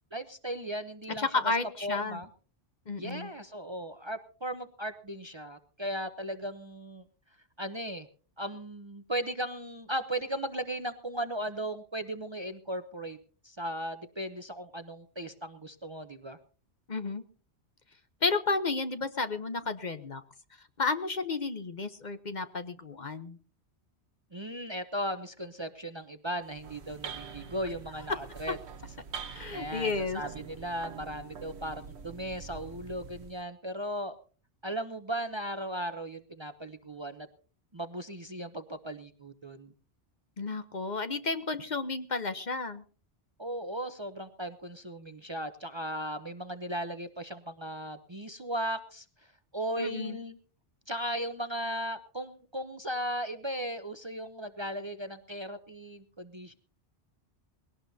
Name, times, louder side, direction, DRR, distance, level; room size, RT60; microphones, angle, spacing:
voice 1, 0.1-1.3 1.8-2.3 3.0-7.0 7.6-8.1 8.4-13.2 13.4-16.4 24.3-28.6 29.5-34.2 34.6-37.3 37.7-39.7 43.4-49.0 49.5-50.4 50.9-56.5, right 1 dB, 30° right, 9 dB, 0.7 m, -37 dB
voice 2, 1.2-2.2 2.9-3.3 16.9-17.2 18.2-20.2 20.8-23.4 29.3-30.2 40.4-42.8 49.8-50.2, left 3 dB, 45° left, 10 dB, 0.9 m, -32 dB
sound 1, 26.4-33.4, right 6 dB, 70° right, 1.3 m, -45 dB
21.0 x 17.5 x 2.7 m, 0.39 s
omnidirectional pair, 1.1 m